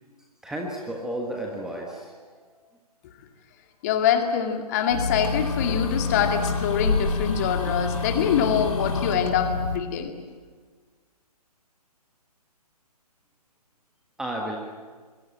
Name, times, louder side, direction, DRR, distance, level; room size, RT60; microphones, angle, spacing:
voice 1, 0.4-2.1 14.2-14.6, right 1 dB, 5° right, 0 dB, 1.5 m, -32 dB
voice 2, 3.8-10.2, left 8 dB, 25° left, 5 dB, 2.2 m, -24 dB
sound 1, 4.9-9.8, left 4 dB, 55° left, 3.8 m, -27 dB
26.0 x 23.0 x 8.8 m, 1.5 s
figure-of-eight pair, 135°, 20 cm